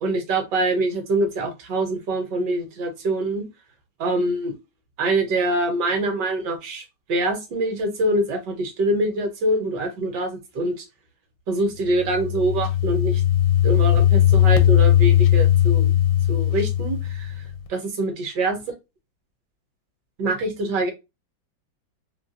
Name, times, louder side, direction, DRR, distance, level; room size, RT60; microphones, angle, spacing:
voice 1, 0.0-3.4 4.0-4.5 5.0-6.8 7.1-10.8 11.5-13.2 13.6-15.9 16.3-17.3 17.7-18.6 20.2-20.9, right 2 dB, 70° right, 5 dB, 1.4 m, -24 dB
sound 1, 11.9-17.6, left 11 dB, 80° left, 1.3 m, -18 dB
3.3 x 2.3 x 2.6 m, 0.24 s
omnidirectional pair, 2.1 m